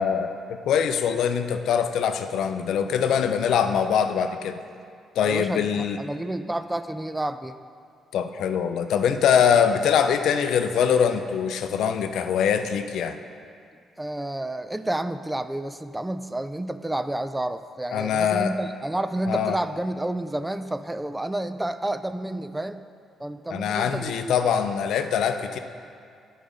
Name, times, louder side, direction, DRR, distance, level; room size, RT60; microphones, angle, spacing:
voice 1, 0.0-4.6 5.2-6.0 8.1-13.2 17.9-18.5 19.3-19.6 23.5-25.6, left 7 dB, 75° left, 8 dB, 0.5 m, -23 dB
voice 2, 5.2-7.6 14.0-22.8 23.2-24.4, right 1 dB, 10° right, 11 dB, 0.3 m, -30 dB
10.0 x 4.9 x 5.1 m, 2.3 s
cardioid pair, 90°, 0 cm